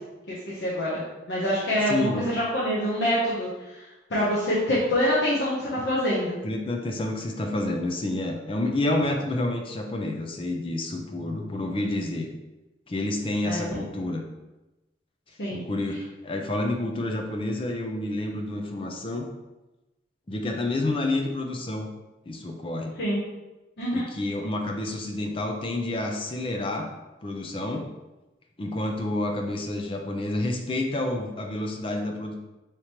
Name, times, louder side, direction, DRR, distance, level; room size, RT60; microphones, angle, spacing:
voice 1, 0.3-3.5 4.1-6.4 13.4-13.7 15.4-15.6 23.0-23.2 23.8-24.1, equal, 75° left, -7 dB, 0.9 m, -25 dB
voice 2, 1.9-2.3 6.4-12.3 12.9-14.2 15.5-19.3 20.3-21.9 22.3-23.0 23.9-26.9 27.2-27.9 28.6-32.3, left 2 dB, 30° left, 3 dB, 0.5 m, -29 dB
5.0 x 2.9 x 3.0 m, 1.0 s
head